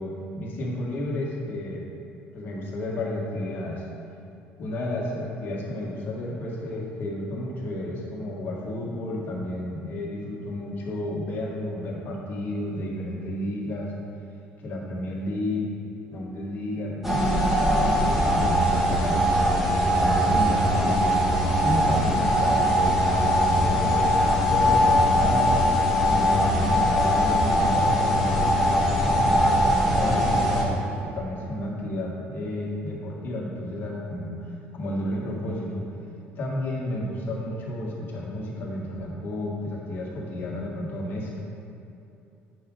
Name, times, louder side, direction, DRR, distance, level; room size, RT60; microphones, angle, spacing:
voice 1, 0.0-1.9 2.3-3.9 4.6-13.9 14.6-15.7 16.1-19.3 19.8-21.2 21.6-23.0 23.4-25.8 26.1-28.6 28.9-34.3 34.7-35.9 36.4-41.4, left 1 dB, 50° left, -4 dB, 2.0 m, -32 dB
sound 1, 17.0-30.6, equal, 5° right, 1.5 m, -21 dB
9.0 x 6.2 x 4.0 m, 2.7 s
cardioid pair, 110°, 4 cm